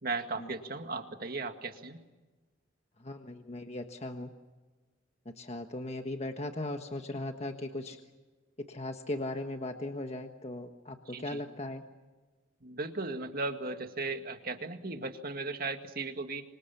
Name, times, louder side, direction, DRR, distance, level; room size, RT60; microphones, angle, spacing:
voice 1, 0.0-2.0 11.1-11.4 12.6-16.4, right 3 dB, 50° right, 6 dB, 2.1 m, -36 dB
voice 2, 3.0-4.3 5.2-8.0 8.7-11.8, left 1 dB, 35° left, 5 dB, 1.4 m, -38 dB
27.5 x 25.5 x 7.2 m, 1.2 s
head